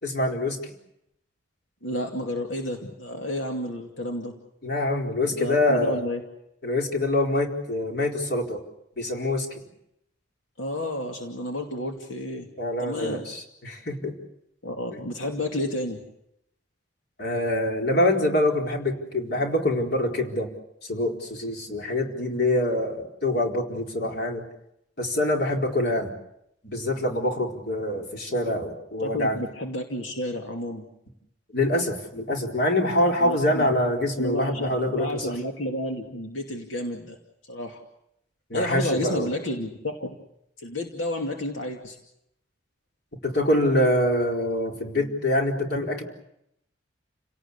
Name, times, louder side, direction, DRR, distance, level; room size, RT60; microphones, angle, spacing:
voice 1, 0.0-0.6 4.6-6.0 6.6-8.6 9.0-9.6 12.6-14.1 14.9-15.0 17.2-20.5 20.9-24.4 25.0-26.1 26.6-29.4 31.5-35.4 38.5-39.3 43.2-46.0, left 1 dB, 55° left, 1 dB, 4.4 m, -25 dB
voice 2, 1.8-4.3 5.3-6.2 10.6-12.5 12.8-13.2 14.6-16.0 29.0-30.8 33.2-33.6 34.2-37.2 37.4-37.8 38.5-40.2 40.6-42.0, left 1 dB, 80° left, 2 dB, 2.5 m, -31 dB
30.0 x 18.0 x 8.4 m, 0.81 s
head